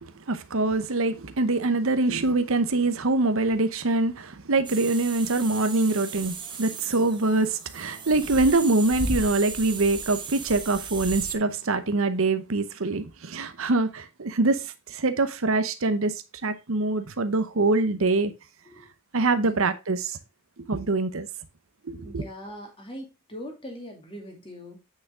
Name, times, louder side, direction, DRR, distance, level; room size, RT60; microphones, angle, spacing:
voice 1, 0.0-16.1 16.4-18.3 19.1-20.2 20.7-21.3 21.8-22.2, right 2 dB, 65° right, 0.8 m, -24 dB
sound 1, 4.6-11.3, right 4 dB, 20° right, 1.0 m, -35 dB
voice 2, 22.0-24.8, equal, 25° left, 2.6 m, -41 dB
8.4 x 6.4 x 3.6 m
head